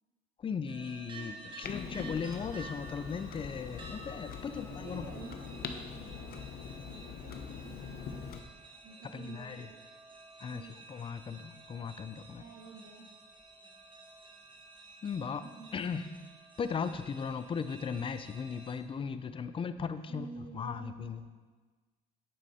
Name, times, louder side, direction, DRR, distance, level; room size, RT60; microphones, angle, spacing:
voice 1, 0.4-5.1 9.1-9.7 10.4-12.4 15.0-16.1 16.6-21.2, left 6 dB, 30° left, 11 dB, 0.6 m, -37 dB
sound 1, 0.7-18.7, right 2 dB, 30° right, 1.8 m, -52 dB
voice 2, 1.1-1.5 4.5-8.1 8.8-9.8 10.5-10.7 12.3-13.1 15.4-15.7 20.1-21.3, right 4 dB, 70° right, 2 dB, 1.4 m, -49 dB
Clock, 1.6-8.4, left 6 dB, 65° left, 0.8 m, -43 dB
9.1 x 8.4 x 4.3 m, 1.3 s
cardioid pair, 110°, 17 cm